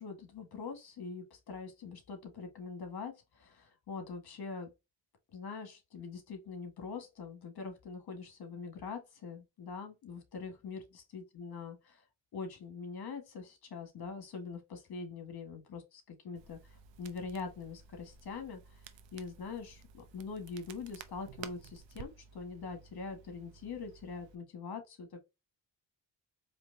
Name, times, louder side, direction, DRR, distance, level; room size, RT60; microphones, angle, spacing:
voice 1, 0.0-3.1 3.4-4.7 5.3-11.8 12.3-16.6 17.0-18.6 19.1-25.1, left 5 dB, 60° left, 1.6 m, -43 dB
Crackle, 16.4-24.4, right 7 dB, 80° right, 0.7 m, -54 dB
4.3 x 2.9 x 2.7 m
cardioid pair, 100°, 43 cm